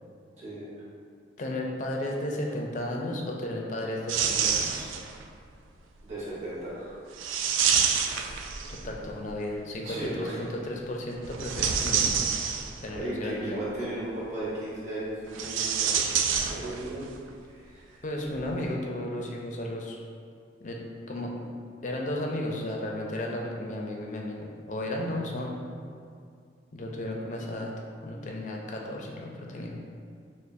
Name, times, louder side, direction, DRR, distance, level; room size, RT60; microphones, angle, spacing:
voice 1, 0.3-0.7 6.0-7.0 9.8-10.4 12.9-16.0 16.5-17.1 17.5-18.0, right 1 dB, 35° right, -10 dB, 1.0 m, -35 dB
voice 2, 1.4-4.9 8.7-12.1 12.8-13.6 18.0-20.0 20.6-20.8 21.1-21.3 21.8-25.6 26.7-27.7 28.0-29.8, left 1 dB, 40° left, -1 dB, 0.4 m, -34 dB
sound 1, 4.1-5.2 7.2-9.0 11.2-13.0 15.3-17.0 17.3-17.4 18.4-18.5, right 7 dB, 80° right, 0.3 m, -27 dB
6.1 x 2.0 x 2.5 m, 2.3 s
head